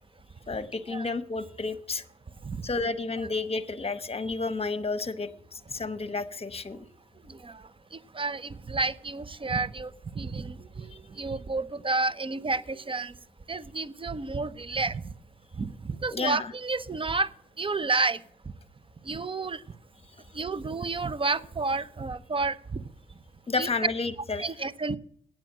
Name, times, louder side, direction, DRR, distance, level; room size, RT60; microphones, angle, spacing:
voice 1, 0.5-2.0 2.6-6.8 16.1-16.5 23.5-24.7, left 3 dB, 35° left, 12 dB, 1.1 m, -31 dB
voice 2, 7.3-13.1 13.5-15.0 15.6-17.3 17.6-18.2 19.0-19.6 20.3-22.8 23.6-23.7 24.4-25.0, right 3 dB, 30° right, 16 dB, 0.7 m, -31 dB
9.0 x 7.6 x 7.5 m, 0.66 s
supercardioid pair, 40°, 17 cm